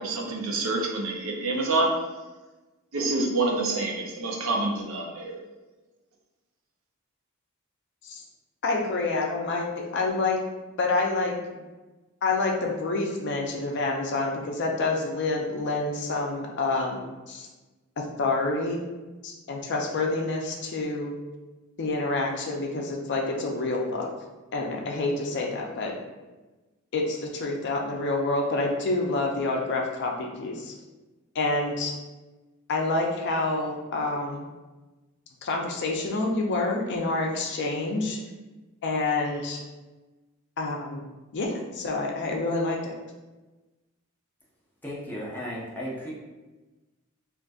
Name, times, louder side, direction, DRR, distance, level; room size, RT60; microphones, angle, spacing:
voice 1, 0.0-1.9 2.9-5.4, right 2 dB, 65° right, -1 dB, 0.6 m, -27 dB
voice 2, 8.6-9.7 9.9-10.4 10.8-11.6 12.2-17.5 18.0-18.8 19.2-21.2 21.8-24.1 24.5-25.9 26.9-30.7 31.3-31.9 32.7-34.5 35.4-38.2 38.8-39.6 40.6-41.0 41.3-43.0, left 3 dB, 55° left, 1 dB, 0.5 m, -28 dB
voice 3, 44.8-46.1, equal, 10° left, -6 dB, 0.7 m, -35 dB
3.8 x 2.5 x 2.4 m, 1.2 s
head